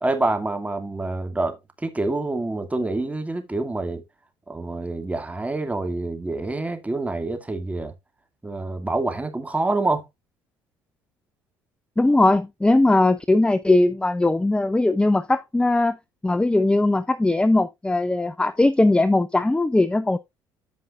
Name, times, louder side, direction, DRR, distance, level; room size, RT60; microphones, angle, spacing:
voice 1, 0.0-4.0 4.5-7.9 8.4-10.0, right 2 dB, 15° right, 2.4 m, -26 dB
voice 2, 12.0-16.0 16.2-20.2, left 2 dB, 10° left, 0.6 m, -19 dB
14.0 x 5.5 x 2.5 m
supercardioid pair, 70°, 10 cm